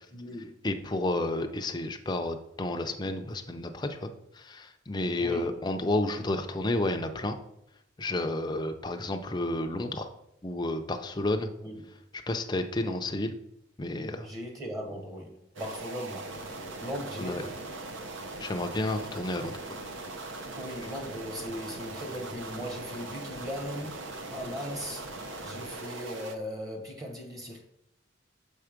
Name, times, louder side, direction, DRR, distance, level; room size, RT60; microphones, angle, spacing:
voice 1, 0.1-0.5 5.2-5.6 11.6-12.0 14.2-16.4 16.8-17.6 20.5-27.6, equal, 20° right, 1.0 m, -39 dB
voice 2, 0.6-4.1 4.4-7.4 8.0-10.1 10.4-11.5 12.3-13.3 13.8-14.3 17.2-17.4 18.4-19.6, left 2 dB, 20° left, 0.5 m, -31 dB
sound 1, 15.6-26.4, right 2 dB, 70° right, 0.8 m, -40 dB
6.6 x 4.6 x 5.1 m
head